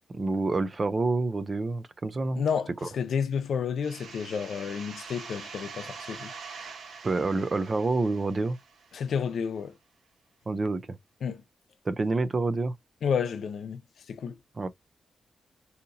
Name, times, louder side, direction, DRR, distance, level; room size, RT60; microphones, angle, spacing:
voice 1, 0.1-2.4 2.8-2.9 7.0-8.6 10.5-10.9 11.9-12.7 14.6-14.7, right 3 dB, 30° right, 0.4 m, -27 dB
voice 2, 2.4-6.3 8.9-9.7 11.2-11.4 13.0-13.8 14.1-14.4, left 7 dB, 70° left, 0.5 m, -30 dB
sound 1, 3.8-9.3, right 5 dB, 75° right, 1.0 m, -44 dB
4.1 x 2.7 x 2.5 m
wide cardioid pair, 165°, 0 cm